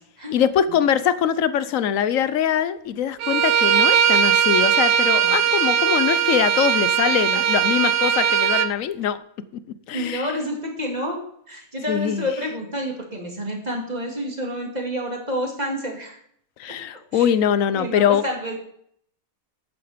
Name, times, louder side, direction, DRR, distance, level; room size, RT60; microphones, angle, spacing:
voice 1, 0.3-9.2 9.9-10.3 11.9-12.3 16.6-18.2, left 9 dB, 70° left, 15 dB, 1.0 m, -22 dB
Bowed string instrument, 3.2-8.7, right 8 dB, 55° right, 0.7 m, -19 dB
voice 2, 9.9-16.2 17.1-17.3 17.7-18.6, equal, 30° right, 0 dB, 2.7 m, -29 dB
11.5 x 9.2 x 5.0 m, 0.68 s
omnidirectional pair, 1.5 m